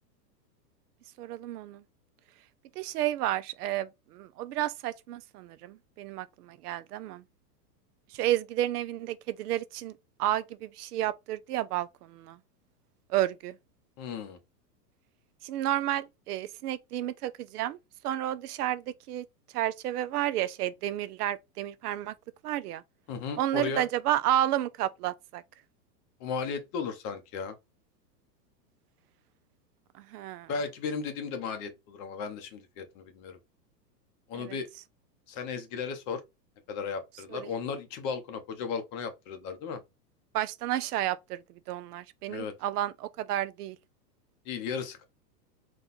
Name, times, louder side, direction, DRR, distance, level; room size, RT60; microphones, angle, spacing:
voice 1, 1.2-1.8 2.8-7.2 8.1-9.9 10.2-12.4 13.1-13.6 15.4-17.8 18.0-19.3 19.5-22.1 22.4-22.8 23.4-25.4 30.1-30.5 34.3-34.6 37.3-37.5 40.3-41.4 41.7-43.8, right 13 dB, 65° right, 0.5 m, -31 dB
voice 2, 14.0-14.4 23.1-23.8 26.2-27.5 30.5-33.4 34.3-34.7 35.3-36.2 36.7-39.8 42.3-42.5 44.5-45.0, left 5 dB, 30° left, 0.6 m, -35 dB
4.2 x 2.3 x 4.0 m
hypercardioid pair, 140°, 50 cm